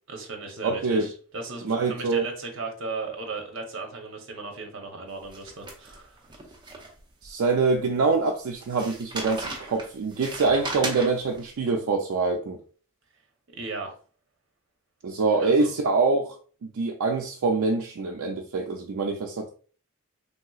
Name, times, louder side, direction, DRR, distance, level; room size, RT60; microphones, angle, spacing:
voice 1, 0.1-6.2 13.5-14.0 15.4-15.7, right 3 dB, 60° right, 3 dB, 0.8 m, -36 dB
voice 2, 0.6-1.1 1.6-2.3 7.2-12.6 15.0-16.4 16.7-19.5, right 4 dB, 75° right, 1 dB, 0.4 m, -25 dB
sound 1, 5.3-7.3 7.7-7.8 8.6-11.4, right 2 dB, 20° right, 0.6 m, -37 dB
3.3 x 2.8 x 2.3 m, 0.41 s
head